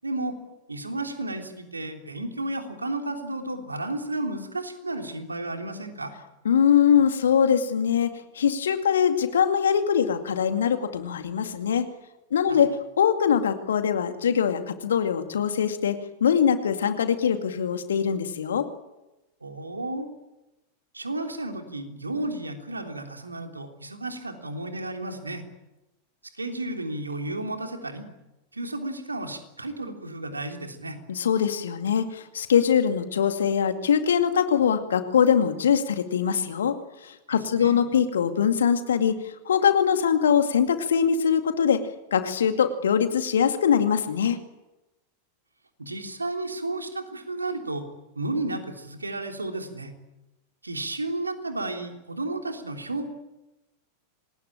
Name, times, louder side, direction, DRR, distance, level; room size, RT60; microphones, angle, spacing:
voice 1, 0.0-0.4 0.7-6.1 12.5-12.6 19.4-20.1 20.9-25.4 26.3-28.1 28.5-31.0 37.3-37.8 45.8-47.9 48.1-49.9 50.6-53.1, right 2 dB, 80° right, 5 dB, 3.4 m, -32 dB
voice 2, 6.4-11.9 12.3-18.7 31.1-41.8 42.1-44.4, left 7 dB, 65° left, 8 dB, 2.2 m, -22 dB
26.5 x 19.5 x 9.0 m, 1.0 s
figure-of-eight pair, 90°, 0 cm